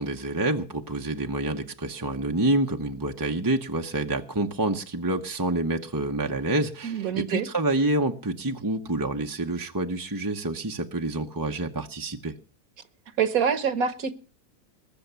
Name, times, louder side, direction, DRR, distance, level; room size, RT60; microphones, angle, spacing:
voice 1, 0.0-12.3, right 2 dB, 20° right, 0.7 m, -27 dB
voice 2, 6.8-7.5 13.2-14.1, right 7 dB, 65° right, 1.7 m, -25 dB
21.0 x 7.1 x 6.9 m
omnidirectional pair, 1.6 m